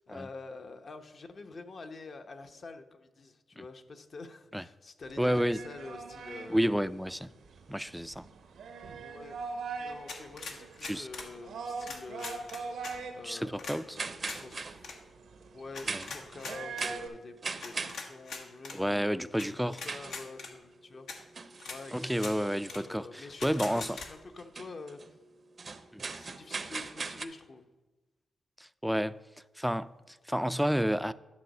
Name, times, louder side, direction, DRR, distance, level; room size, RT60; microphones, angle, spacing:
voice 1, 0.0-6.7 9.0-9.4 9.8-12.4 13.1-14.8 15.5-19.1 19.5-21.1 21.7-22.3 22.7-25.2 26.1-27.7, left 3 dB, 55° left, 0.8 m, -47 dB
sound 1, 5.0-17.1, right 4 dB, 90° right, 1.0 m, -43 dB
voice 2, 5.2-5.6 6.5-7.3 7.7-8.3 10.8-11.1 13.2-14.0 15.9-16.0 18.7-19.8 21.9-24.0 25.9-26.0 28.6-29.2 29.6-31.1, equal, ahead, 0.3 m, -30 dB
sound 2, 10.1-11.3 11.8-12.9 13.6-13.8 14.2-14.4 14.8-15.0 15.7-16.9 17.6-18.8 19.4-19.5 19.7-20.5 21.1-21.2 21.6-21.8 22.1-22.3 22.7-22.8 23.4-24.1, left 4 dB, 90° left, 1.2 m, -41 dB
sound 3, 13.9-27.2, right 4 dB, 50° right, 0.6 m, -41 dB
11.0 x 4.0 x 6.5 m
cardioid pair, 70°, 0 cm